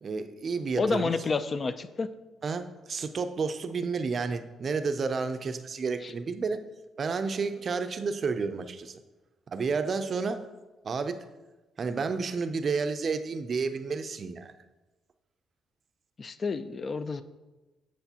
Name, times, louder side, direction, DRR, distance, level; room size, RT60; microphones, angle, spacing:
voice 1, 0.0-1.1 2.4-6.6 7.0-9.0 9.5-10.4 10.8-11.2 11.8-14.5, right 4 dB, 45° right, 9 dB, 0.5 m, -31 dB
voice 2, 0.8-2.1 6.0-6.1 16.2-17.2, left 4 dB, 40° left, 12 dB, 0.4 m, -29 dB
8.1 x 6.3 x 2.9 m, 1.1 s
cardioid pair, 90°, 0 cm